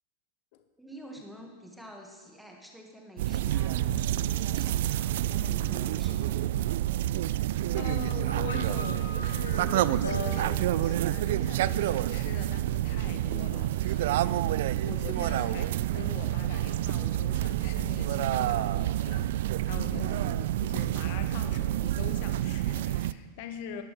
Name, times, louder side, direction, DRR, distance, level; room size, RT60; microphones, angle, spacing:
voice 1, 0.8-6.5 19.9-20.2, equal, ahead, 1 dB, 2.1 m, -48 dB
sound 1, 3.2-23.1, right 13 dB, 55° right, 0.3 m, -28 dB
voice 2, 7.3-23.8, left 8 dB, 50° left, 7 dB, 1.2 m, -43 dB
sound 2, 8.3-11.7, left 2 dB, 80° left, 1.8 m, -40 dB
19.0 x 11.0 x 3.5 m, 1.5 s
figure-of-eight pair, 90°, 0 cm